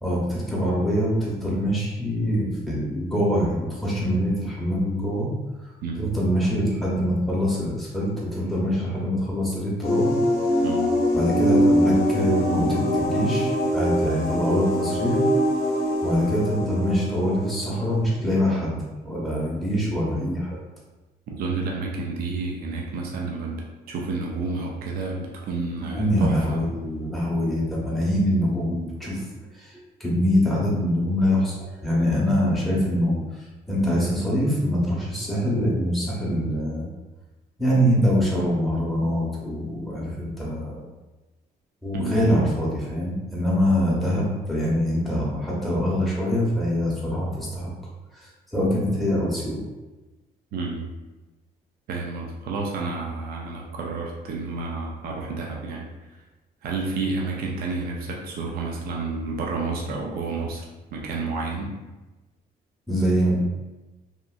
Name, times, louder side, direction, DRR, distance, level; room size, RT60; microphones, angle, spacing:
voice 1, 0.0-5.3 5.9-10.1 11.1-15.2 16.0-20.5 25.9-33.2 33.7-36.9 37.6-40.9 41.8-47.7 48.1-49.6 62.9-63.4, equal, ahead, -6 dB, 0.8 m, -24 dB
sound 1, 9.8-18.2, equal, 65° left, 0.6 m, -23 dB
voice 2, 19.7-20.0 21.3-26.6 41.9-42.2 50.5-50.9 51.9-55.9 56.6-60.7 60.9-61.7, right 3 dB, 65° right, -1 dB, 0.5 m, -30 dB
2.9 x 2.4 x 2.4 m, 1.1 s
cardioid pair, 135°, 16 cm